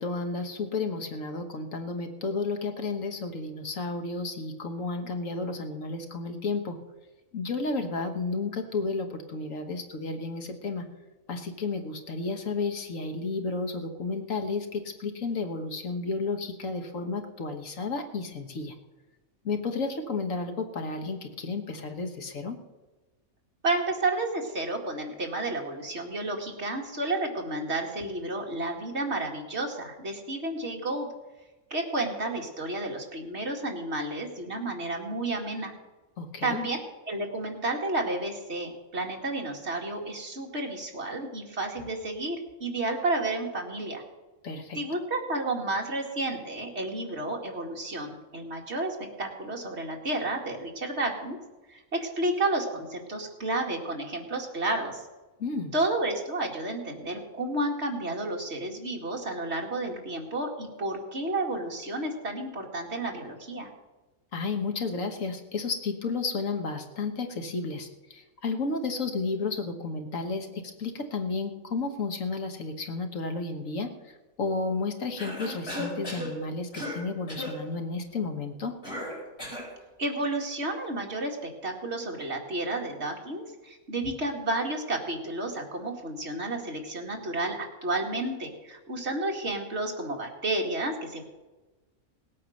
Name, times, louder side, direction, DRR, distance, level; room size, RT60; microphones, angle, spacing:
voice 1, 0.0-6.8 7.3-10.8 11.3-18.7 19.4-22.6 36.2-36.7 44.4-44.8 55.4-55.7 64.3-73.9 74.4-78.8, left 3 dB, 65° left, 5 dB, 1.7 m, -32 dB
voice 2, 23.6-31.1 31.7-35.7 36.4-44.0 44.7-51.4 51.7-55.0 55.7-63.7 80.0-91.2, right 2 dB, 50° right, 1 dB, 2.3 m, -31 dB
Cough, 75.2-76.3 76.7-77.0 77.3-77.6 78.8-79.7, left 1 dB, 45° left, 6.4 m, -35 dB
18.5 x 8.6 x 6.4 m, 1.2 s
omnidirectional pair, 1.5 m